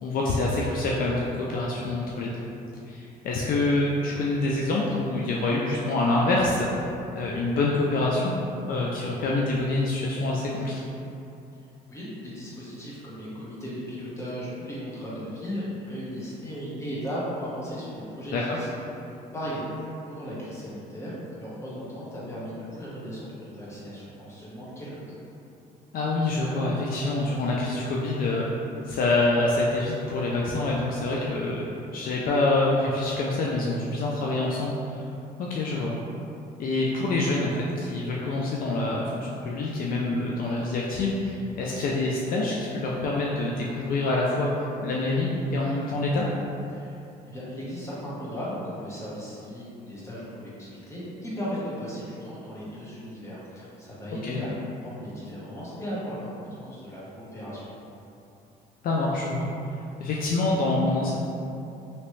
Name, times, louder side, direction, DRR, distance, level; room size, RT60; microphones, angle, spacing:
voice 1, 0.0-2.4 2.9-6.7 7.1-8.3 8.7-10.8 18.3-18.6 25.9-28.5 28.9-31.6 31.9-35.0 35.4-35.9 36.6-46.3 54.2-54.4 58.8-59.5 60.0-61.2, left 2 dB, 60° left, -3 dB, 0.4 m, -26 dB
voice 2, 11.9-18.7 19.0-25.2 46.7-57.6, equal, 15° left, -8 dB, 1.0 m, -36 dB
3.0 x 2.9 x 3.1 m, 2.7 s
cardioid pair, 110°, 17 cm